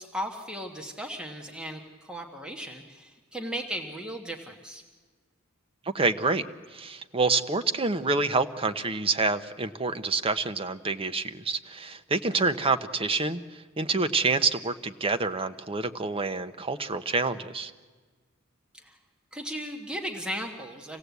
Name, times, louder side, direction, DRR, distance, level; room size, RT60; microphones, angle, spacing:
voice 1, 0.0-4.8 18.7-19.0 19.3-21.0, equal, 5° right, 2 dB, 1.3 m, -36 dB
voice 2, 5.9-6.5 6.7-17.7, right 3 dB, 25° right, 9 dB, 0.8 m, -27 dB
26.0 x 16.5 x 8.2 m, 1.4 s
head